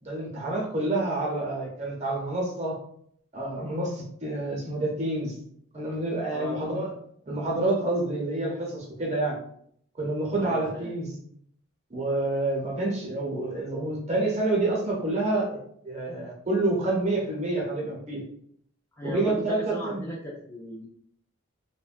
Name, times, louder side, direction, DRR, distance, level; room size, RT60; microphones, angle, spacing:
voice 1, 0.0-2.8 3.3-5.4 5.7-6.9 7.3-9.4 10.0-11.2 11.9-15.6 15.8-18.2 19.0-20.0, right 2 dB, 35° right, -2 dB, 0.7 m, -28 dB
voice 2, 6.3-6.7 10.4-10.9 19.0-20.9, left 1 dB, 10° left, -4 dB, 0.3 m, -37 dB
3.0 x 2.2 x 2.5 m, 0.65 s
head